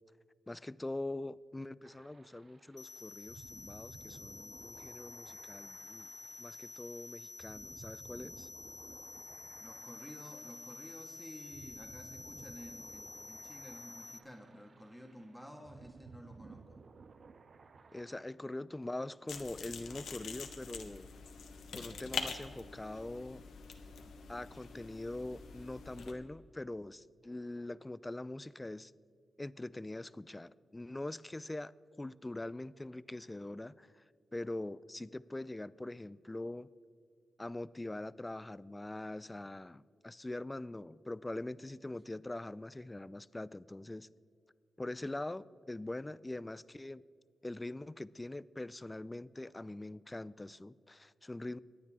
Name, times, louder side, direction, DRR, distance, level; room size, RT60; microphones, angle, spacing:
voice 1, 0.5-6.1 6.4-8.5 17.9-21.1 21.8-23.4 24.3-28.9 29.4-31.7 32.0-34.0 34.3-36.7 37.4-44.1 44.8-47.0 47.4-51.6, left 2 dB, 20° left, 19 dB, 0.3 m, -43 dB
sound 1, 1.8-18.2, right 4 dB, 55° right, 0.6 m, -57 dB
sound 2, 2.8-14.2, left 3 dB, 55° left, 0.8 m, -50 dB
voice 2, 9.5-16.8, equal, ahead, 2 dB, 1.8 m, -52 dB
sound 3, 19.3-26.1, left 5 dB, 85° left, 1.1 m, -45 dB
24.0 x 9.6 x 3.7 m, 2.2 s
cardioid pair, 70°, 0 cm